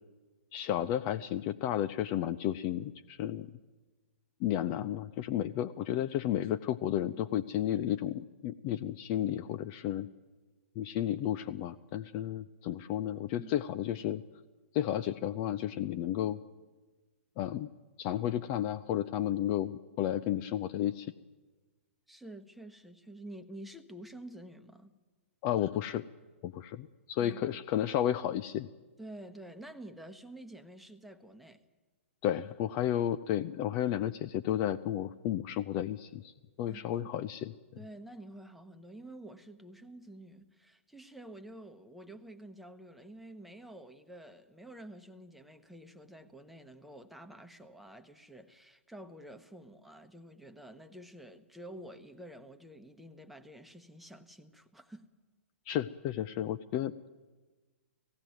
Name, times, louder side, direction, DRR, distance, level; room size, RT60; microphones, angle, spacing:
voice 1, 0.5-3.5 4.4-10.1 10.8-14.2 14.7-16.4 17.4-17.7 18.0-21.1 25.4-26.0 26.4-28.7 32.2-36.3 36.6-37.5 55.7-57.1, left 11 dB, 35° left, 12 dB, 0.5 m, -32 dB
voice 2, 22.1-24.9 27.2-27.6 29.0-31.6 36.6-37.1 37.8-55.1, right 1 dB, ahead, 7 dB, 1.1 m, -49 dB
18.0 x 16.0 x 9.3 m, 1.3 s
figure-of-eight pair, 115°, 7 cm